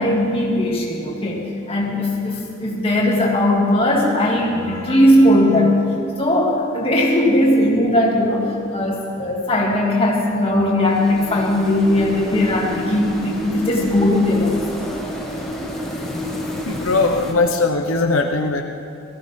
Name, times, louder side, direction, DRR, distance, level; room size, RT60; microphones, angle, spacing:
voice 1, 0.0-5.7 6.2-14.6, left 1 dB, 30° left, -3 dB, 2.2 m, -18 dB
sound 1, 10.8-17.3, left 1 dB, ahead, 1.6 m, -29 dB
voice 2, 16.7-18.6, left 3 dB, 85° left, 4 dB, 0.8 m, -19 dB
18.0 x 14.5 x 3.7 m, 2.6 s
head